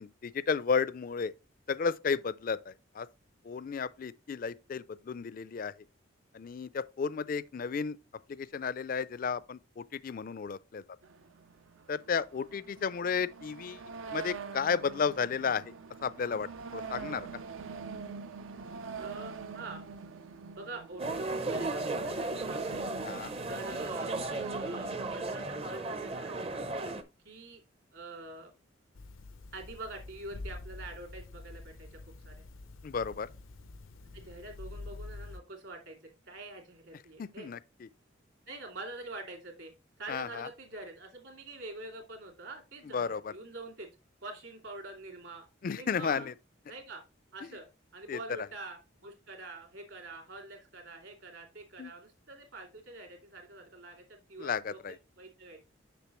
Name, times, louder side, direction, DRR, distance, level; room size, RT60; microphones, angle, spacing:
voice 1, 0.0-1.3 1.7-3.1 3.4-5.7 6.3-8.0 8.3-10.8 11.9-13.8 14.1-15.7 16.0-17.3 23.1-23.3 32.8-33.3 37.2-37.9 40.1-40.5 42.9-43.3 45.6-46.3 48.1-48.2 51.8-51.9 54.4-55.0, left 6 dB, 45° left, 0.3 m, -33 dB
sound 1, 11.0-25.5, right 5 dB, 80° right, 0.5 m, -45 dB
voice 2, 19.0-19.8 20.5-22.6 23.5-24.2 24.6-26.5 27.2-27.6 27.9-28.5 29.5-32.0 32.2-32.5 34.1-36.0 36.3-37.5 38.5-39.7 40.0-43.9 44.2-45.5 45.7-46.3 46.7-47.0 47.3-47.7 47.9-54.8 55.2-55.6, right 2 dB, 65° right, 2.7 m, -45 dB
sound 2, 21.0-27.0, right 2 dB, 30° right, 0.5 m, -35 dB
sound 3, 28.9-35.4, left 2 dB, 85° left, 0.6 m, -46 dB
6.8 x 6.3 x 3.0 m
head